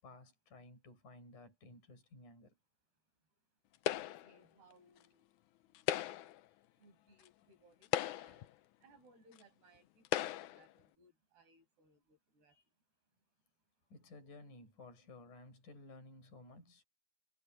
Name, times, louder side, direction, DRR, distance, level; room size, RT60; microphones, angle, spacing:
voice 1, 0.0-2.6 12.5-12.6 13.9-16.8, left 2 dB, 50° left, 8.5 m, -56 dB
sound 1, 3.9-4.4 5.7-6.4 7.3-7.4 7.8-8.5 9.4-9.5 10.1-10.6, left 13 dB, 85° left, 1.7 m, -37 dB
voice 2, 3.9-5.3 5.9-6.1 6.8-8.5 8.8-12.5, right 2 dB, 75° right, 9.5 m, -67 dB
omnidirectional pair, 4.6 m